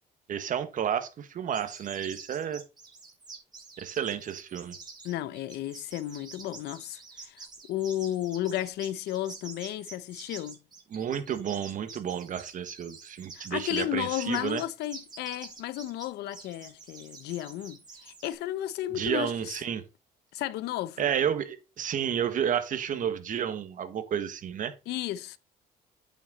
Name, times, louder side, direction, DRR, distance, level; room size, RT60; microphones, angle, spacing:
voice 1, 0.3-2.6 3.8-4.7 10.9-14.6 18.9-19.8 21.0-24.7, right 9 dB, 50° right, 1.5 m, -31 dB
sound 1, 1.5-18.3, right 4 dB, 25° right, 3.5 m, -47 dB
voice 2, 5.0-10.6 13.3-19.6 20.3-21.1 24.9-25.4, left 13 dB, 80° left, 0.8 m, -33 dB
8.4 x 6.3 x 4.0 m
cardioid pair, 110°, 17 cm